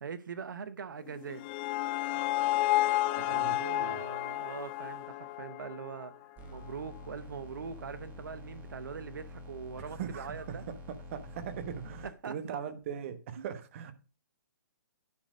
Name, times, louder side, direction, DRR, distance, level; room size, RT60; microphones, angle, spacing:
voice 1, 0.0-1.4 3.3-6.1 6.5-10.7 12.0-12.4 13.4-13.5, right 6 dB, 80° right, 0.8 m, -42 dB
sound 1, 1.1-6.2, left 17 dB, 30° left, 0.4 m, -31 dB
voice 2, 3.2-4.0 9.8-13.9, right 8 dB, 40° right, 1.1 m, -40 dB
sound 2, 6.4-12.1, left 2 dB, 15° right, 1.3 m, -47 dB
9.8 x 4.2 x 4.9 m
hypercardioid pair, 150°, 10 cm